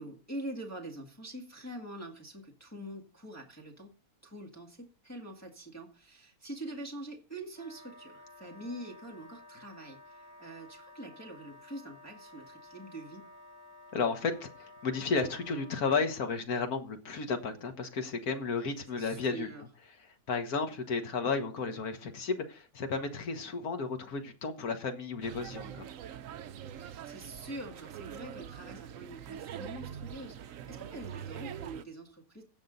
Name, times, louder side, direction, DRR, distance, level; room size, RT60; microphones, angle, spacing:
voice 1, 0.0-3.9 4.2-13.3 18.9-19.7 26.8-32.4, right 1 dB, 10° left, 1.9 m, -44 dB
Wind instrument woodwind instrument, 7.5-15.9, left 2 dB, 45° left, 1.6 m, -53 dB
voice 2, 13.9-19.5 20.3-25.9, left 4 dB, 80° left, 1.9 m, -33 dB
sound 1, 25.2-31.8, right 9 dB, 65° right, 1.0 m, -44 dB
17.0 x 6.3 x 4.0 m
omnidirectional pair, 1.6 m